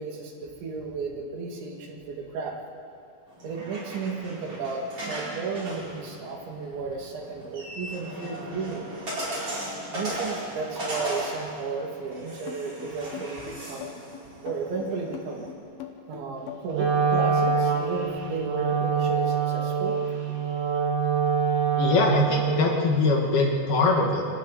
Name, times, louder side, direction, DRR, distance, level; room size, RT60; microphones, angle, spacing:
voice 1, 0.0-2.6 3.4-8.9 9.9-14.0 14.4-15.5 16.1-20.0, right 4 dB, 75° right, -1 dB, 4.7 m, -33 dB
sound 1, 3.3-15.5, right 1 dB, 30° right, 5.5 m, -37 dB
sound 2, 12.5-17.6, left 10 dB, 90° left, 4.1 m, -40 dB
Wind instrument woodwind instrument, 16.7-22.7, right 6 dB, 60° right, 3.9 m, -25 dB
voice 2, 21.8-24.3, left 3 dB, 60° left, 0 dB, 3.6 m, -22 dB
28.0 x 28.0 x 4.2 m, 2.4 s
omnidirectional pair, 5.3 m